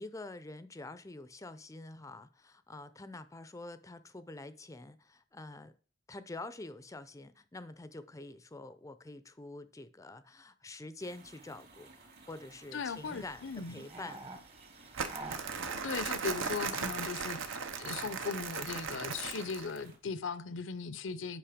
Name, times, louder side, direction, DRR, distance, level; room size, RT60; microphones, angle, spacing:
voice 1, 0.0-5.7 6.1-14.2, left 2 dB, 15° left, 0.5 m, -47 dB
sound 1, 11.0-20.0, right 3 dB, 50° right, 2.4 m, -57 dB
voice 2, 12.7-13.9 15.7-17.4 17.8-21.4, left 5 dB, 70° left, 0.6 m, -38 dB
sound 2, 12.9-18.5, right 2 dB, 30° right, 1.1 m, -50 dB
Crumpling crinkling, 14.9-19.8, right 5 dB, 75° right, 0.9 m, -37 dB
8.8 x 5.3 x 5.0 m
head